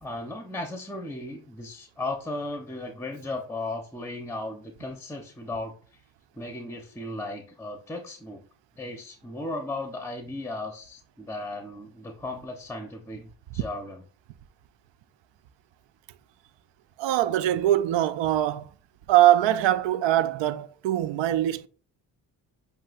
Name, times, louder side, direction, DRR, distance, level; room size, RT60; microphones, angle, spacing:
voice 1, 0.0-6.0 6.3-8.4 8.8-14.0, left 2 dB, 5° left, 0.9 m, -36 dB
voice 2, 17.0-18.7 19.1-21.7, right 13 dB, 75° right, 0.5 m, -22 dB
7.4 x 2.8 x 2.5 m
supercardioid pair, 50°, 45 cm